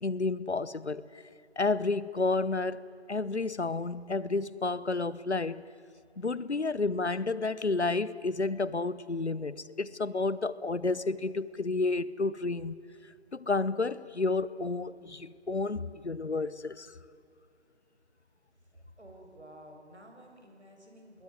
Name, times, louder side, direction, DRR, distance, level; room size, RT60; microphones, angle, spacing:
voice 1, 0.0-1.0 1.6-2.8 3.1-5.6 6.2-12.8 13.3-16.9, left 3 dB, 70° left, 1.0 m, -31 dB
voice 2, 19.0-21.2, right 1 dB, 70° right, 7.0 m, -52 dB
27.0 x 20.5 x 9.5 m
figure-of-eight pair, 175°, 35 cm